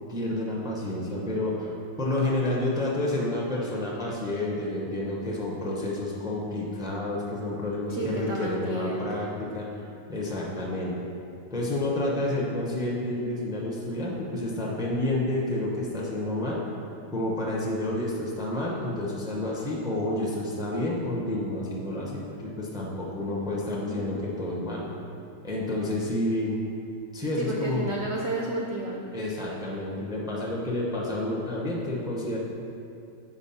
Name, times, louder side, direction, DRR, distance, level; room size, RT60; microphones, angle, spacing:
voice 1, 0.1-9.7 10.1-10.9 11.5-16.6 17.1-24.9 25.4-26.6 27.1-27.9 29.1-32.4, left 1 dB, 5° right, -4 dB, 0.3 m, -29 dB
voice 2, 7.9-9.4 23.2-24.1 27.4-29.1, right 2 dB, 75° right, -2 dB, 0.6 m, -33 dB
6.1 x 4.8 x 5.6 m, 2.6 s
omnidirectional pair, 2.0 m